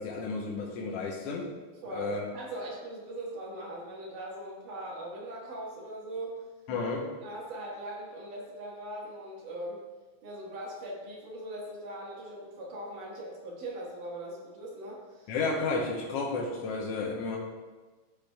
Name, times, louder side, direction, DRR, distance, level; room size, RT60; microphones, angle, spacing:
voice 1, 0.0-1.5 1.9-2.2 6.7-7.0 15.3-17.4, left 3 dB, 70° left, -2 dB, 1.6 m, -32 dB
voice 2, 1.8-6.4 7.2-9.8 10.2-15.4, right 1 dB, 85° right, -5 dB, 3.2 m, -40 dB
11.5 x 6.8 x 2.3 m, 1.3 s
omnidirectional pair, 3.6 m